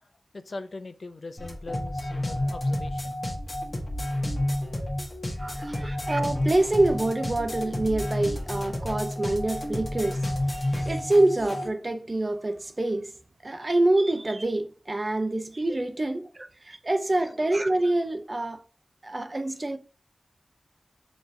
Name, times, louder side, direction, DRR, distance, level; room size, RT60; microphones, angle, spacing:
voice 1, 0.3-3.2 4.0-4.6 5.4-6.0 15.3-15.4 16.0-16.1 17.2-17.4, left 3 dB, 65° left, 0.5 m, -42 dB
sound 1, 1.4-11.7, left 1 dB, 45° left, 1.3 m, -30 dB
voice 2, 5.4-13.1 13.4-18.6 19.0-19.8, right 2 dB, 40° right, 0.6 m, -26 dB
6.1 x 3.0 x 2.6 m
cardioid pair, 50°, 0 cm